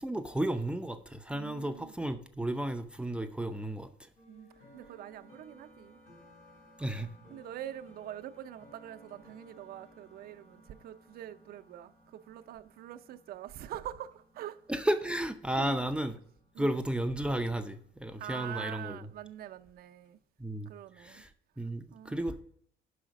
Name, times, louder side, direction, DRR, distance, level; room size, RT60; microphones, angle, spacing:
voice 1, 0.0-4.1 6.8-7.1 14.7-16.1 16.6-19.0 20.4-20.7 21.0-21.3 21.6-22.4, right 1 dB, 5° right, 0.5 m, -33 dB
voice 2, 1.3-1.9 4.3-4.5 4.7-6.0 7.3-14.6 15.5-15.8 16.5-16.7 18.2-20.2 20.7-21.2 21.6-22.3, right 12 dB, 65° right, 0.6 m, -44 dB
sound 1, 4.2-20.2, left 1 dB, 85° left, 3.3 m, -60 dB
5.6 x 5.0 x 6.2 m
cardioid pair, 110°, 17 cm